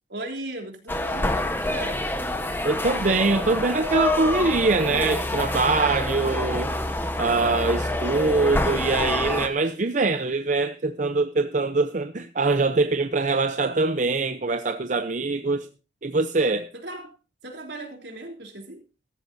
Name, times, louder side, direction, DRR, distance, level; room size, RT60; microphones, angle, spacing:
voice 1, 0.1-2.0 15.4-15.7 16.7-17.1 17.4-18.8, right 2 dB, 75° right, 3.5 m, -37 dB
sound 1, 0.9-9.5, left 1 dB, 10° left, 1.1 m, -27 dB
voice 2, 2.6-6.7 7.2-15.7 16.0-16.7, right 3 dB, 45° right, 0.7 m, -23 dB
15.0 x 14.0 x 2.7 m
head